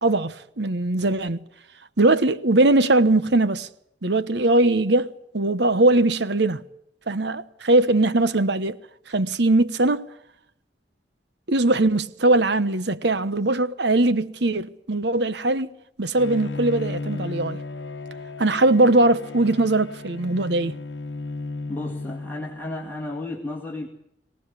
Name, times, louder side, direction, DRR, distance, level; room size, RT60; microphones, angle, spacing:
voice 1, 0.0-1.4 2.0-3.7 4.0-6.6 7.1-8.8 9.1-10.0 11.5-15.7 16.0-17.6 18.4-20.7, right 2 dB, 65° right, 1.0 m, -20 dB
Bowed string instrument, 16.2-22.9, left 3 dB, 70° left, 1.1 m, -34 dB
voice 2, 21.7-23.9, left 2 dB, 10° left, 2.2 m, -33 dB
24.0 x 18.5 x 8.3 m
head